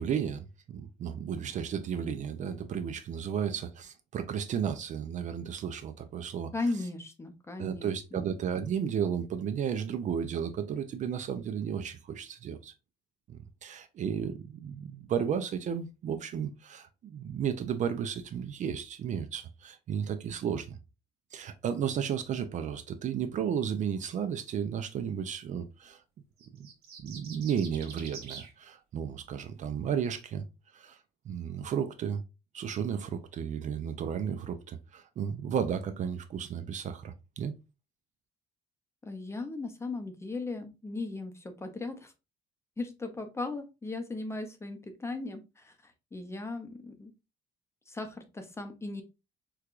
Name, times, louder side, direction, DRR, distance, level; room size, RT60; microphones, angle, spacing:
voice 1, 0.0-6.5 7.6-12.7 13.3-20.8 21.3-26.0 26.6-26.7 27.0-30.4 30.7-31.0 31.3-32.2 32.5-37.5, right 8 dB, 45° right, 0.4 m, -33 dB
voice 2, 6.5-8.2 39.0-42.1 42.8-45.7 46.1-47.1 47.9-49.0, left 3 dB, 15° left, 0.6 m, -37 dB
sound 1, 26.4-28.5, right 5 dB, 75° right, 1.0 m, -46 dB
4.5 x 2.3 x 2.4 m
cardioid pair, 110°, 17 cm